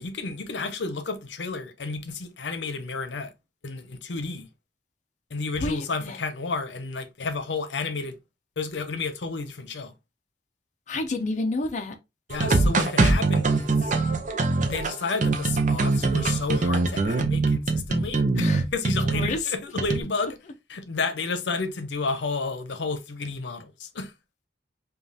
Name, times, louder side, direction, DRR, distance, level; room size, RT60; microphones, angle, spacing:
voice 1, 0.0-3.3 3.6-4.5 5.3-8.1 8.6-9.9 12.3-14.0 14.7-20.4 20.7-24.1, left 4 dB, 85° left, 0.7 m, -31 dB
voice 2, 5.6-6.2 10.9-11.9 18.4-18.6 19.1-19.5, left 2 dB, 45° left, 0.5 m, -29 dB
sound 1, 12.3-19.3 19.8-20.0, right 3 dB, 45° right, 0.5 m, -23 dB
5.1 x 2.3 x 2.7 m
head